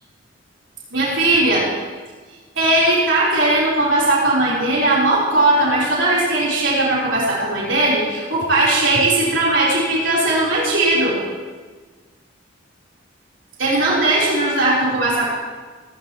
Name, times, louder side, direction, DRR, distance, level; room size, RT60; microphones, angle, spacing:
voice 1, 0.9-1.7 2.6-11.2 13.6-15.3, right 2 dB, 75° right, -6 dB, 3.8 m, -18 dB
17.0 x 16.5 x 3.0 m, 1.4 s
head